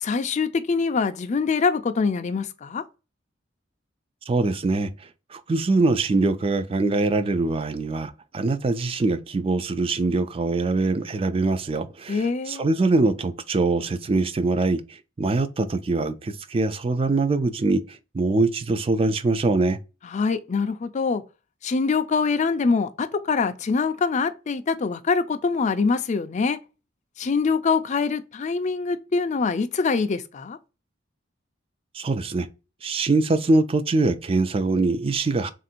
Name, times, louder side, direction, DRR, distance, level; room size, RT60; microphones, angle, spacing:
voice 1, 0.0-2.8 12.1-12.7 20.1-21.2 21.6-26.6 27.2-30.6, left 4 dB, 40° left, 0.4 m, -24 dB
voice 2, 4.3-4.9 5.3-19.8 31.9-32.5 32.8-35.5, right 3 dB, 30° right, 0.4 m, -23 dB
3.6 x 2.5 x 4.2 m
head